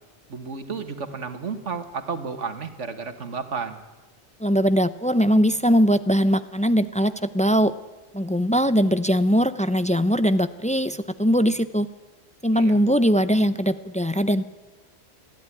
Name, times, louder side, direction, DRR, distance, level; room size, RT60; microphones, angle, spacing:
voice 1, 0.3-3.8 12.5-12.8, right 5 dB, 85° right, 8 dB, 1.9 m, -32 dB
voice 2, 4.4-7.7 8.1-11.9 12.4-14.4, equal, 10° left, 12 dB, 0.4 m, -21 dB
22.0 x 14.0 x 10.0 m, 1.2 s
omnidirectional pair, 1.2 m